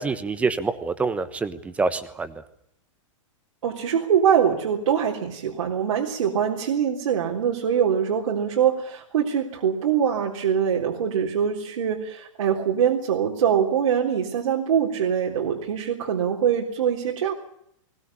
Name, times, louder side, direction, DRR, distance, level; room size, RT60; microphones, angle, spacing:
voice 1, 0.0-2.3, right 4 dB, 10° right, 13 dB, 1.1 m, -26 dB
voice 2, 3.6-17.3, right 8 dB, 80° right, -1 dB, 3.7 m, -23 dB
21.0 x 19.0 x 9.8 m, 0.72 s
hypercardioid pair, 160°, 17 cm